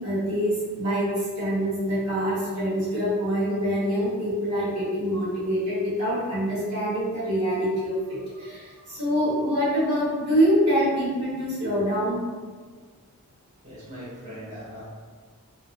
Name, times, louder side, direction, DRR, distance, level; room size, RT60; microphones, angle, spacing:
voice 1, 0.0-12.2, equal, 75° right, -9 dB, 1.5 m, -25 dB
voice 2, 13.6-14.8, equal, 35° right, -10 dB, 1.0 m, -40 dB
3.6 x 2.1 x 2.7 m, 1.5 s
head